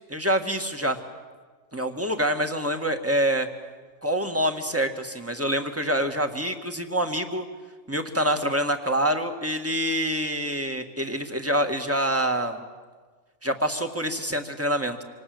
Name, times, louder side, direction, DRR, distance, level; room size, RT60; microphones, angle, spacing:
voice 1, 0.1-1.0 1.7-3.5 4.0-7.4 7.9-12.6 13.4-15.0, equal, 10° right, 5 dB, 1.8 m, -26 dB
26.5 x 26.5 x 7.9 m, 1.5 s
omnidirectional pair, 1.3 m